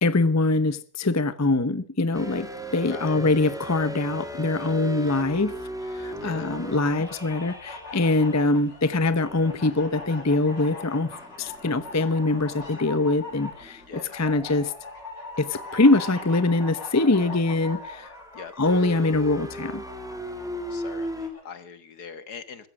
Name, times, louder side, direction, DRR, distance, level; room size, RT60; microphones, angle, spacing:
voice 1, 0.0-2.5 2.7-5.5 5.9-13.8 14.1-14.7 15.4-18.1 18.6-19.8, left 2 dB, 15° left, 0.5 m, -23 dB
sound 1, 2.1-8.7 9.2-21.3, equal, ahead, 2.7 m, -39 dB
sound 2, 6.4-21.4, left 3 dB, 85° left, 6.5 m, -42 dB
voice 2, 13.9-14.2 18.3-18.5 20.7-22.7, left 6 dB, 65° left, 2.0 m, -42 dB
15.0 x 15.0 x 6.0 m
omnidirectional pair, 1.9 m